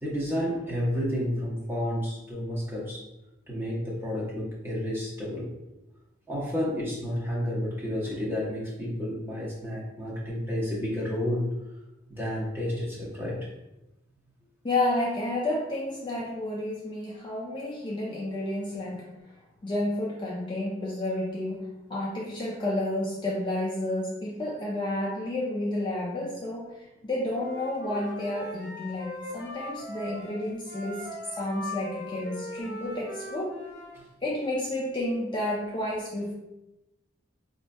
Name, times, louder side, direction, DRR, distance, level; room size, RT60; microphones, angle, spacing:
voice 1, 0.0-3.0 3.5-5.5 6.3-11.5 12.1-13.4 33.9-34.0, equal, 10° right, -5 dB, 0.8 m, -31 dB
voice 2, 14.6-19.1 19.6-33.6 34.2-36.3, left 1 dB, 25° left, -3 dB, 0.4 m, -31 dB
Wind instrument woodwind instrument, 27.3-34.0, left 1 dB, 60° left, 0.8 m, -40 dB
4.3 x 2.5 x 2.2 m, 0.95 s
head